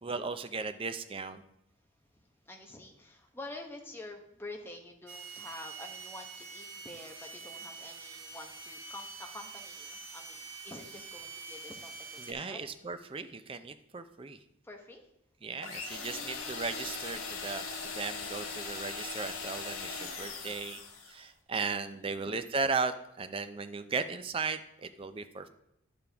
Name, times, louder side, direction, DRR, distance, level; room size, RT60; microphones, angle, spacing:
voice 1, 0.0-1.4 12.2-14.4 15.4-20.8 21.1-25.5, right 4 dB, 25° right, 9 dB, 0.4 m, -36 dB
voice 2, 2.1-11.9 12.3-12.6 14.6-15.0 15.6-15.8 21.9-22.2, left 2 dB, 10° left, 2 dB, 0.9 m, -48 dB
sound 1, 5.1-12.3, right 4 dB, 70° right, 1.5 m, -46 dB
sound 2, 15.6-21.2, left 4 dB, 85° left, 1.3 m, -40 dB
9.9 x 6.9 x 3.4 m, 0.82 s
head